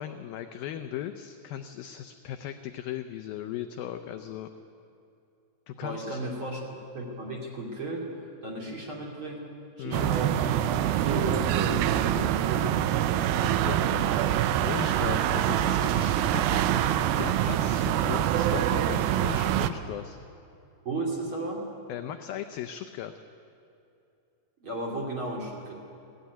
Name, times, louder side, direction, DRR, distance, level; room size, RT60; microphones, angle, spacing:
voice 1, 0.0-4.5 5.7-6.2 9.8-10.2 13.4-14.2 14.6-20.2 21.9-23.1, left 10 dB, 80° left, 8 dB, 2.1 m, -37 dB
voice 2, 5.7-6.6 6.9-8.1 8.4-9.4 9.8-10.5 11.0-13.0 13.6-14.0 20.8-21.7 24.6-25.8, right 2 dB, 35° right, -2 dB, 2.5 m, -34 dB
sound 1, 9.9-19.7, right 11 dB, 85° right, 2.1 m, -25 dB
21.5 x 16.0 x 9.4 m, 2.6 s
omnidirectional pair, 5.0 m